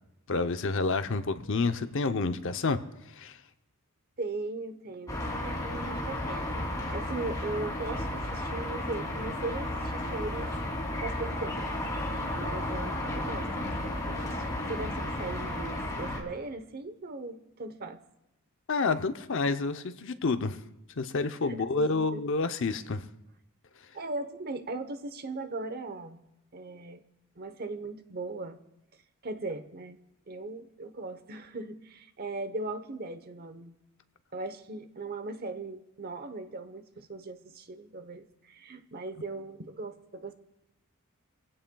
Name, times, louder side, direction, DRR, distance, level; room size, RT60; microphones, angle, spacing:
voice 1, 0.3-2.8 3.1-3.4 18.7-20.6 21.0-23.1, left 3 dB, 60° left, 9 dB, 0.7 m, -29 dB
voice 2, 4.2-10.6 11.0-18.0 21.5-22.2 23.9-26.2 26.5-27.0 27.4-28.6 29.2-30.0 30.3-33.7 34.3-40.3, right 3 dB, 45° right, 9 dB, 0.9 m, -39 dB
sound 1, 5.1-16.2, left 1 dB, 15° left, 2.9 m, -33 dB
24.5 x 16.0 x 2.3 m, 0.88 s
head